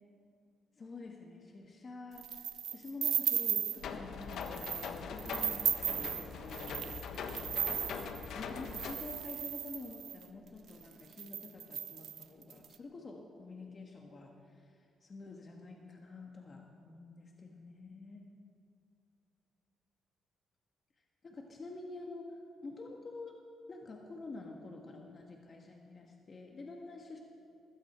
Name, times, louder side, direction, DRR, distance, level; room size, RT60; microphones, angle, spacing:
voice 1, 0.8-6.1 6.3-7.1 8.3-18.2 21.2-22.4 22.6-23.4 23.7-27.2, left 3 dB, 40° left, 1 dB, 1.5 m, -48 dB
sound 1, 2.2-3.9 4.3-4.9 5.2-10.2 10.8-10.9 11.1-12.7, right 10 dB, 70° right, 0.7 m, -36 dB
sound 2, 3.8-8.9, left 5 dB, 75° left, 1.3 m, -42 dB
20.5 x 15.5 x 4.4 m, 2.4 s
cardioid pair, 100°, 0 cm